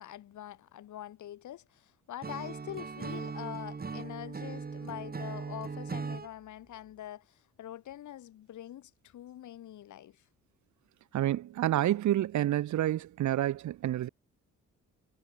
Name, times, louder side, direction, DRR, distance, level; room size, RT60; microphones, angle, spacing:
voice 1, 0.0-10.2, left 12 dB, 75° left, 6.5 m, -44 dB
Acoustic guitar / Strum, 2.2-6.3, right 4 dB, 30° right, 3.8 m, -39 dB
voice 2, 11.1-14.1, right 13 dB, 70° right, 1.4 m, -28 dB
cardioid pair, 90°, 30 cm